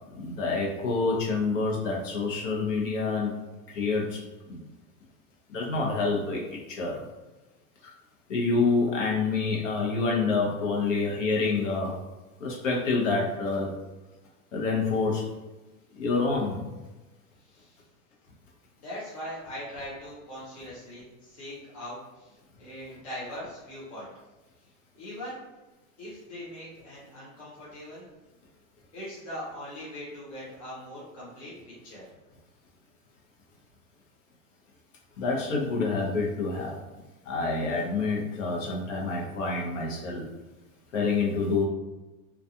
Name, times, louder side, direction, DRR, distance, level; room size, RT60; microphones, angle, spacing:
voice 1, 0.1-3.3 3.7-4.2 4.5-4.6 5.5-7.0 8.3-11.9 12.4-13.7 14.5-15.2 15.9-16.6 35.2-36.7 37.3-40.3 40.9-41.6, left 3 dB, 60° left, -2 dB, 0.8 m, -27 dB
voice 2, 18.8-24.1 24.9-25.4 26.0-28.0 28.9-31.5 31.8-32.1, equal, 25° left, -8 dB, 0.4 m, -41 dB
2.3 x 2.3 x 2.7 m, 1.1 s
supercardioid pair, 180°, 44 cm